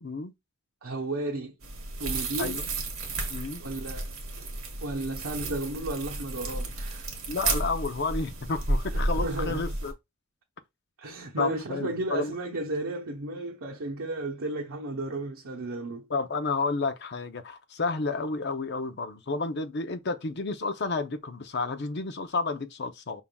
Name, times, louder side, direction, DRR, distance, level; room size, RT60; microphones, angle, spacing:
voice 1, 0.0-0.3 2.4-2.7 3.3-3.6 7.3-9.9 11.4-12.3 16.1-23.2, left 3 dB, 50° left, 0.6 m, -31 dB
voice 2, 0.8-1.5 2.0-2.6 3.6-4.1 4.8-7.1 8.9-9.8 11.0-16.1, right 2 dB, 85° right, 0.9 m, -33 dB
sound 1, 1.6-9.9, right 2 dB, 65° right, 1.5 m, -32 dB
5.5 x 3.5 x 2.3 m
head